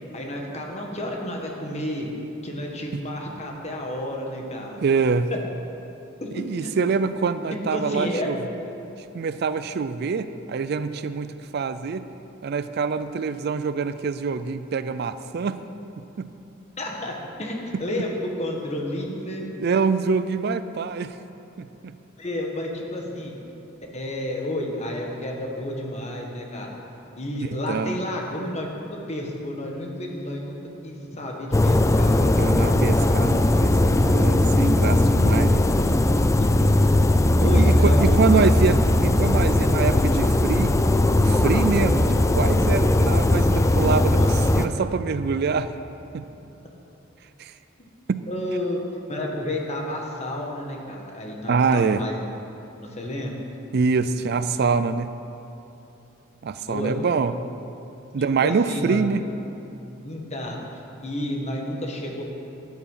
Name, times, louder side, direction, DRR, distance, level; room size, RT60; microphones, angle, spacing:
voice 1, 0.1-2.1 2.4-4.8 6.2-6.7 7.5-8.3 16.8-17.5 17.8-19.4 22.2-23.3 23.9-26.8 27.2-28.8 29.1-30.6 30.8-32.3 37.4-38.5 44.1-44.3 48.3-48.8 49.1-52.1 52.8-53.4 56.7-56.9 58.4-59.1 60.0-60.6 61.0-62.2, left 1 dB, 35° left, 0 dB, 1.6 m, -31 dB
voice 2, 4.8-5.3 6.3-8.4 9.1-12.0 12.4-15.6 16.2-16.3 19.6-21.2 21.6-21.7 27.7-27.9 32.4-35.6 37.4-40.7 41.1-42.1 42.3-45.7 46.1-46.2 47.4-47.5 48.1-48.2 51.5-52.0 53.7-55.1 56.4-57.3 58.1-59.2, right 5 dB, 55° right, 12 dB, 0.4 m, -25 dB
sound 1, 31.5-44.7, left 1 dB, 15° left, 0.4 m, -19 dB
13.0 x 9.6 x 5.6 m, 2.9 s
head